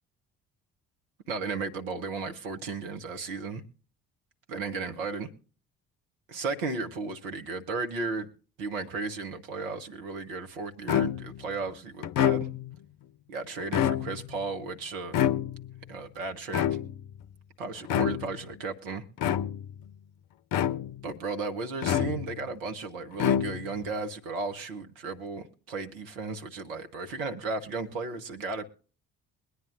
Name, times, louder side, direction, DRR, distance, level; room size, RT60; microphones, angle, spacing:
voice 1, 1.3-3.6 4.5-5.3 6.3-8.3 8.6-12.5 13.3-15.2 15.9-16.8 17.6-19.0 21.0-28.6, right 3 dB, 70° right, 5 dB, 1.3 m, -35 dB
sound 1, 10.9-11.4 12.0-12.8 13.6-14.4 15.1-15.8 16.5-17.2 17.9-18.4 19.2-19.8 20.5-21.1 21.8-22.5 23.1-23.9, left 10 dB, 50° left, 0.7 m, -27 dB
22.5 x 9.9 x 2.6 m, 0.39 s
figure-of-eight pair, 45°, 43 cm